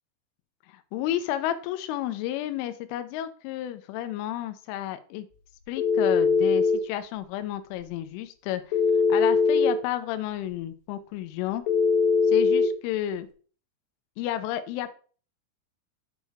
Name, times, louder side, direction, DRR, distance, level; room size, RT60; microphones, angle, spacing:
voice 1, 0.7-5.3 5.7-8.8 9.1-11.6 12.3-13.3 14.2-14.9, left 12 dB, 90° left, 10 dB, 3.1 m, -31 dB
Telephone, 5.8-6.8 8.7-9.7 11.7-12.7, left 4 dB, 70° left, 2.3 m, -21 dB
8.0 x 6.3 x 3.4 m, 0.41 s
omnidirectional pair, 5.5 m